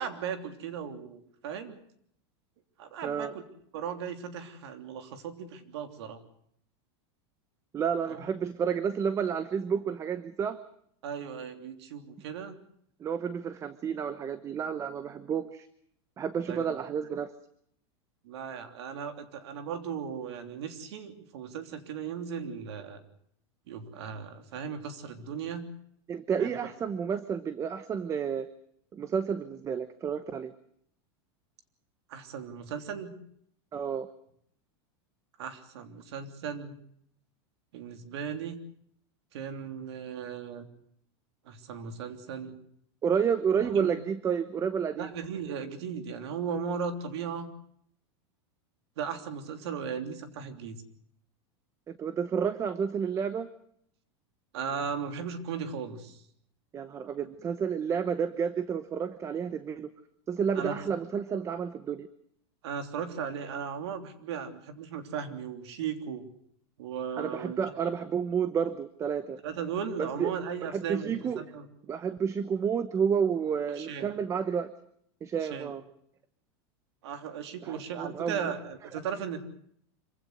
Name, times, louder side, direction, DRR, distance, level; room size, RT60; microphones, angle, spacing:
voice 1, 0.0-1.8 2.8-3.4 3.7-6.2 8.1-8.2 11.0-12.5 16.5-16.6 18.2-23.0 23.7-25.7 26.4-26.5 32.1-33.2 35.4-36.8 37.7-38.6 39.3-40.7 41.4-42.6 43.5-43.9 45.0-47.5 49.0-50.8 54.5-56.2 60.5-60.8 62.6-66.3 66.8-67.6 69.4-71.7 73.8-74.1 75.4-75.7 77.0-79.4, right 7 dB, 75° right, 7 dB, 3.2 m, -37 dB
voice 2, 3.0-3.3 7.7-10.6 13.0-15.7 16.2-17.3 26.1-28.5 28.9-30.5 33.7-34.1 43.0-45.1 51.9-53.5 56.7-59.9 60.3-62.1 67.2-69.4 70.0-70.3 70.6-71.4 71.9-74.7 75.2-75.8 77.6-78.5, right 7 dB, 20° right, 13 dB, 0.9 m, -30 dB
25.5 x 16.5 x 8.0 m, 0.70 s
supercardioid pair, 150°, 14 cm